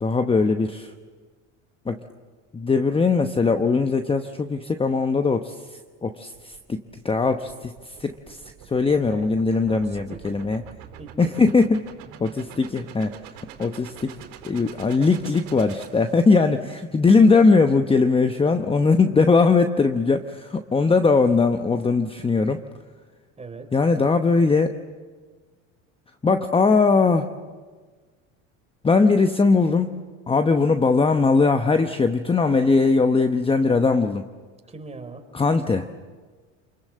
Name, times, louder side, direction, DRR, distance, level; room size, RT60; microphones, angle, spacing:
voice 1, 0.0-0.9 1.9-2.0 2.5-8.4 8.7-10.6 11.2-11.9 12.2-13.1 13.6-14.2 14.4-22.6 23.7-24.8 26.2-27.3 28.8-30.0 30.3-34.2 35.3-35.9, left 4 dB, 15° left, 8 dB, 1.0 m, -20 dB
sound 1, 6.3-16.7, right 10 dB, 70° right, 3.6 m, -45 dB
voice 2, 8.8-9.3 9.7-10.4 11.0-11.3 23.4-23.8 34.7-35.2, right 3 dB, 15° right, 5 dB, 3.8 m, -41 dB
28.5 x 21.5 x 7.5 m, 1.4 s
supercardioid pair, 95°, 37 cm